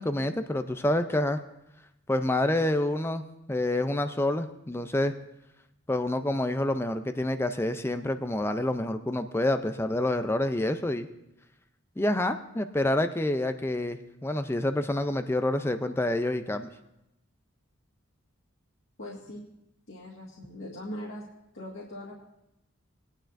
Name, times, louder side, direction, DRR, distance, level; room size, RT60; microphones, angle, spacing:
voice 1, 0.0-1.4 2.1-3.2 3.5-5.1 5.9-11.1 12.0-16.7, left 1 dB, 10° left, 9 dB, 0.4 m, -27 dB
voice 2, 19.0-19.4 19.9-21.2 21.5-22.1, left 1 dB, 60° left, -6 dB, 1.9 m, -40 dB
20.0 x 10.0 x 2.6 m, 0.87 s
head